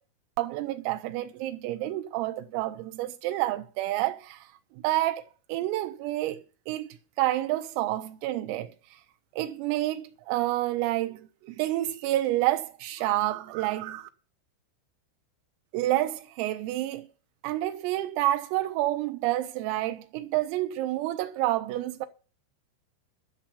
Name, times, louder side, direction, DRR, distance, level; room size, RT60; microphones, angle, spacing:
voice 1, 0.4-4.5 4.8-5.2 5.5-8.7 9.3-14.1 15.7-17.1 17.4-22.1, right 15 dB, 90° right, 3.5 m, -29 dB
12.0 x 6.0 x 8.2 m
omnidirectional pair, 5.8 m